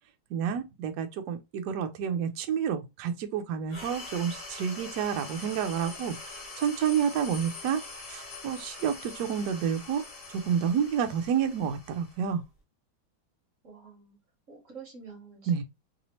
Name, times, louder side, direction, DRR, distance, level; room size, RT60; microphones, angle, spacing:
voice 1, 0.3-7.8 8.1-10.0 10.3-12.4 15.5-15.6, right 8 dB, 70° right, 1.0 m, -29 dB
sound 1, 3.7-12.6, left 3 dB, 35° left, 0.9 m, -44 dB
sound 2, 5.1-10.5, left 5 dB, 65° left, 1.6 m, -49 dB
voice 2, 13.6-14.2 14.5-15.6, right 5 dB, 45° right, 1.4 m, -48 dB
3.4 x 2.7 x 3.0 m
omnidirectional pair, 2.3 m